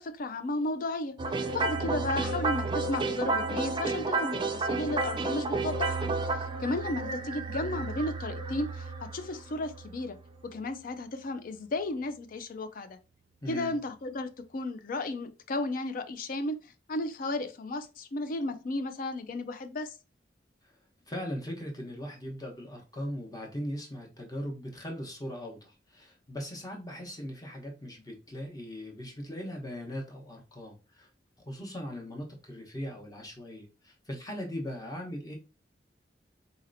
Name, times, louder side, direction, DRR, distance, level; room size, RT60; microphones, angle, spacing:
voice 1, 0.0-6.1 6.4-10.2 10.4-13.0 13.5-16.6 16.9-19.9, left 2 dB, 50° left, 0.4 m, -34 dB
sound 1, 1.2-10.4, right 3 dB, 25° right, 0.4 m, -32 dB
voice 2, 1.7-2.1 13.4-13.8 20.6-20.7 21.1-31.1 31.5-35.4, equal, 20° left, 0.9 m, -39 dB
4.0 x 2.8 x 2.6 m
head